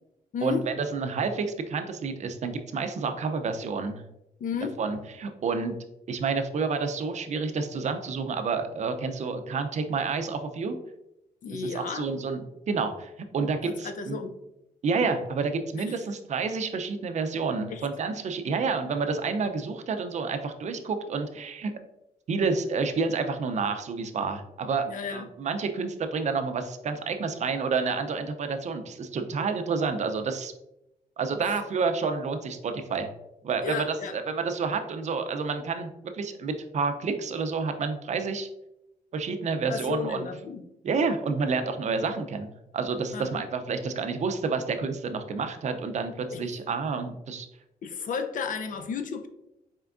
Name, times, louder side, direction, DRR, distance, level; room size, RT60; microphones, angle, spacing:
voice 1, 0.4-4.0 4.8-5.7 6.1-10.8 11.5-14.2 14.8-21.7 22.3-24.9 25.1-30.5 31.2-33.1 33.4-38.5 39.1-40.3 40.8-47.5, right 4 dB, 50° right, 7 dB, 0.5 m, -29 dB
voice 2, 4.4-4.7 11.4-12.0 13.6-14.3 17.7-17.8 24.8-25.2 33.6-34.1 39.7-40.6 43.1-43.4 46.3-46.4 47.8-49.3, left 6 dB, 60° left, 7 dB, 0.6 m, -33 dB
4.4 x 3.4 x 2.5 m, 0.86 s
cardioid pair, 85°, 16 cm